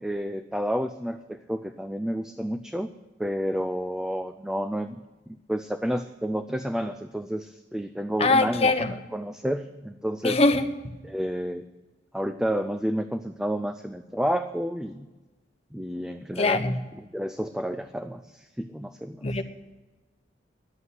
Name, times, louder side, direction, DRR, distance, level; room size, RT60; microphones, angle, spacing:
voice 1, 0.0-2.9 3.2-8.7 9.1-10.4 11.0-11.7 12.1-15.1 15.7-16.6 17.1-19.3, equal, 5° right, 9 dB, 0.4 m, -30 dB
voice 2, 8.2-8.9 10.2-10.7 16.4-16.8 19.2-19.4, left 3 dB, 35° left, 8 dB, 0.9 m, -22 dB
11.5 x 8.2 x 9.5 m, 1.2 s
head